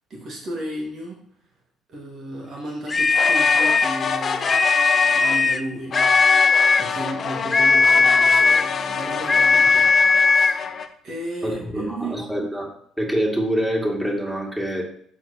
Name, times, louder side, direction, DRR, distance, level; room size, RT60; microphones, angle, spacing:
voice 1, 0.1-1.2 1.9-4.7 5.1-6.1 6.8-12.2, right 1 dB, 45° right, -1 dB, 1.9 m, -34 dB
sound 1, 2.9-4.0 4.4-5.7 5.9-6.9 7.5-8.7 9.3-10.6, left 4 dB, 25° left, 0.4 m, -17 dB
sound 2, 3.1-5.4 5.9-10.9, left 6 dB, 40° left, 0.8 m, -27 dB
voice 2, 11.4-12.7 13.0-14.8, equal, 5° right, -1 dB, 2.4 m, -25 dB
13.0 x 4.5 x 2.9 m, 0.64 s
figure-of-eight pair, 50°, 0 cm